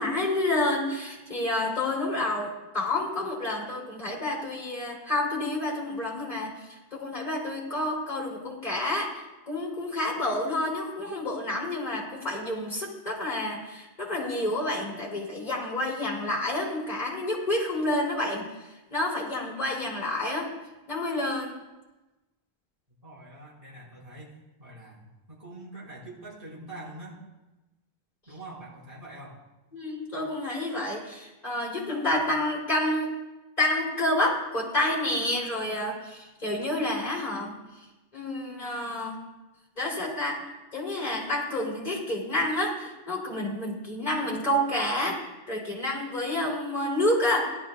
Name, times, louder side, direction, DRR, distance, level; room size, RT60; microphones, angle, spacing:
voice 1, 0.0-18.5 18.9-20.5 20.9-21.5 29.7-33.1 33.6-37.5 38.1-39.2 39.8-40.4 40.7-45.2 45.5-47.4, left 1 dB, 40° left, -4 dB, 3.5 m, -29 dB
voice 2, 23.0-27.2 28.3-29.4, right 2 dB, 35° right, -5 dB, 5.0 m, -44 dB
18.0 x 12.0 x 2.4 m, 1.1 s
omnidirectional pair, 1.1 m